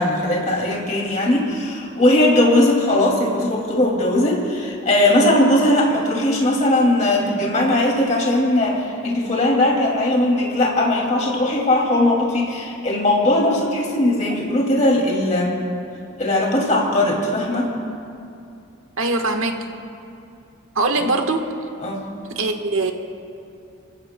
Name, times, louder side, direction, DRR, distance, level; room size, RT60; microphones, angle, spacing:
voice 1, 0.0-15.6 16.2-17.7 21.8-22.0, left 1 dB, 35° left, -2 dB, 2.4 m, -19 dB
voice 2, 19.0-19.7 20.7-21.5 22.3-22.9, right 2 dB, 80° right, 4 dB, 1.3 m, -21 dB
29.5 x 15.5 x 2.2 m, 2.5 s
head